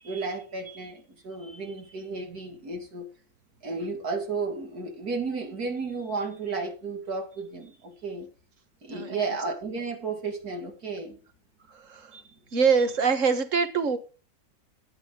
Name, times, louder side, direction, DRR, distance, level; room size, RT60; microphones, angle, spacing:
voice 1, 0.0-3.1 3.6-8.3 8.8-11.2 12.1-12.6, right 4 dB, 90° right, 3.0 m, -33 dB
voice 2, 8.9-9.4 11.7-12.2 12.5-14.0, right 5 dB, 60° right, 1.9 m, -25 dB
14.0 x 9.4 x 3.9 m
omnidirectional pair, 1.6 m